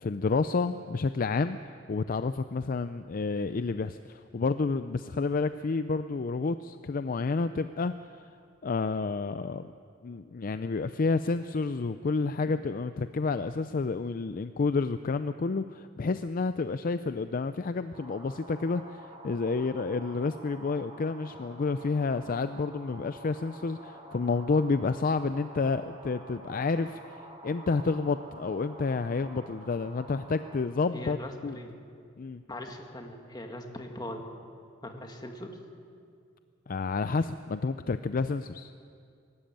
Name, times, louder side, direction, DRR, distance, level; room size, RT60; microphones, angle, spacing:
voice 1, 0.0-7.9 8.6-9.7 10.0-31.2 31.4-31.6 32.2-32.4 36.7-38.7, left 4 dB, 45° left, 11 dB, 0.4 m, -30 dB
sound 1, 17.9-30.6, right 1 dB, 30° right, 3.2 m, -48 dB
voice 2, 30.9-31.7 32.5-34.2 34.8-35.6, left 1 dB, 20° left, 3 dB, 1.9 m, -40 dB
23.0 x 13.0 x 9.1 m, 2.3 s
head